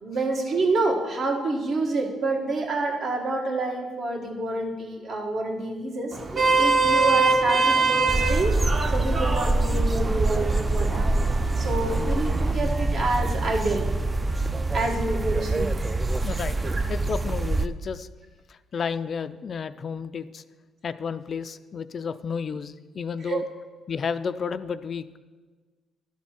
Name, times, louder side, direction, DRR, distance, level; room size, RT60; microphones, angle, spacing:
voice 1, 0.0-8.6 8.9-11.1 11.6-13.8 14.7-15.7 16.6-16.8 23.2-23.4, right 2 dB, 60° right, 1 dB, 1.7 m, -28 dB
Vehicle horn car horn honking, 6.1-12.5, right 3 dB, 40° right, 0.9 m, -25 dB
sound 1, 8.1-17.7, right 2 dB, 25° right, 0.4 m, -25 dB
voice 2, 16.2-16.6 16.9-18.1 18.5-20.4 20.8-23.4 23.9-25.2, left 6 dB, 50° left, 12 dB, 0.3 m, -32 dB
11.5 x 4.3 x 6.0 m, 1.4 s
cardioid pair, 90°, 0 cm